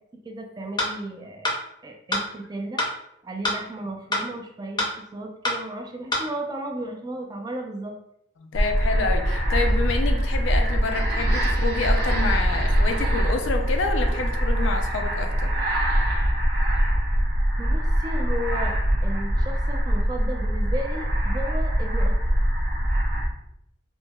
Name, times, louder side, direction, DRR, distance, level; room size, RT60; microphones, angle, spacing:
voice 1, 0.2-1.5 1.8-2.8 3.2-4.9 5.1-7.9 17.6-18.8 19.0-22.1, right 1 dB, 20° right, 2 dB, 0.4 m, -34 dB
sound 1, 0.8-0.9 1.4-1.6 2.1-2.2 2.8-2.9 3.4-3.6 4.1-4.3 4.8-4.9 5.4-5.6 6.1-6.2, left 1 dB, 25° left, 0.6 m, -24 dB
voice 2, 8.4-15.5, left 3 dB, 70° left, 5 dB, 0.4 m, -28 dB
sound 2, 8.5-23.3, equal, 55° right, 0.7 m, -23 dB
4.4 x 2.0 x 2.3 m, 0.78 s
head